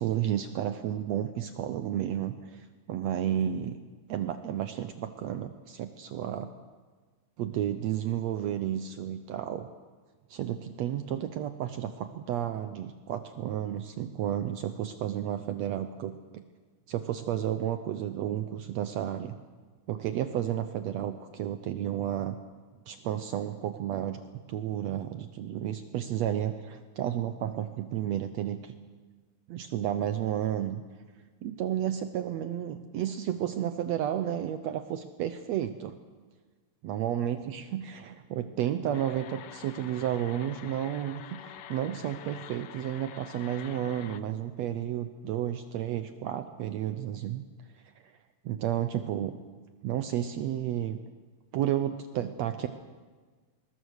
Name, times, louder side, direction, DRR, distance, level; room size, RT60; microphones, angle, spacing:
voice 1, 0.0-3.8 4.1-6.5 7.4-9.7 10.3-16.4 16.9-19.3 19.9-22.4 22.9-28.8 29.5-30.8 31.4-36.0 36.8-47.4 48.0-48.1 48.5-49.3 49.8-51.0 51.5-52.7, right 11 dB, 70° right, 9 dB, 1.8 m, -32 dB
sound 1, 38.9-44.2, left 9 dB, 70° left, 1.4 m, -47 dB
21.0 x 21.0 x 6.5 m, 1.4 s
omnidirectional pair, 3.5 m